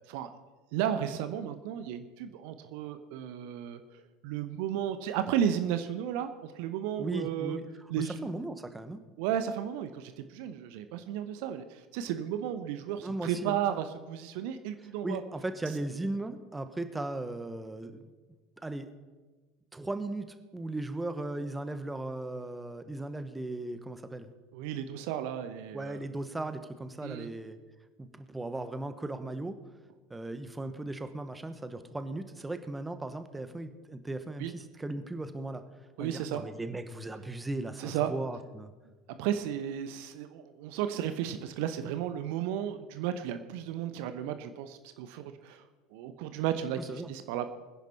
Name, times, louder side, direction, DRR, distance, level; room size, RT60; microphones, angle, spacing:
voice 1, 0.7-7.6 7.9-8.1 9.2-15.2 24.5-26.0 27.0-27.3 34.4-34.5 36.0-36.4 37.8-38.1 39.1-45.6 45.9-47.5, right 10 dB, 55° right, 10 dB, 0.9 m, -34 dB
voice 2, 7.0-7.6 8.0-9.0 13.0-13.6 15.0-18.0 18.6-18.9 19.7-24.3 25.7-27.6 28.0-29.6 30.1-35.6 36.0-38.7 46.8-47.1, right 2 dB, 10° right, 10 dB, 1.3 m, -37 dB
24.0 x 10.5 x 4.2 m, 1.3 s
figure-of-eight pair, 75°, 0 cm